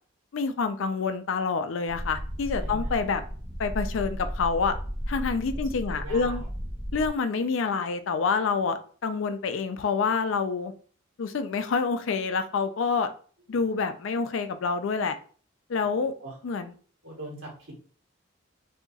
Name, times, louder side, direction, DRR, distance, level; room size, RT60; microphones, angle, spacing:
voice 1, 0.3-3.2 3.6-4.7 5.1-6.4 6.9-10.7 11.2-13.1 13.5-15.2 15.7-16.1 16.4-16.7, left 5 dB, 75° left, 9 dB, 0.4 m, -27 dB
sound 1, 1.9-7.1, equal, 5° left, 0.5 m, -34 dB
voice 2, 2.6-2.9 4.9-5.0 5.5-5.6 5.9-6.5 13.5-13.7 15.7-16.4 17.0-17.8, right 2 dB, 75° right, -4 dB, 1.3 m, -43 dB
3.9 x 2.8 x 2.4 m, 0.42 s
head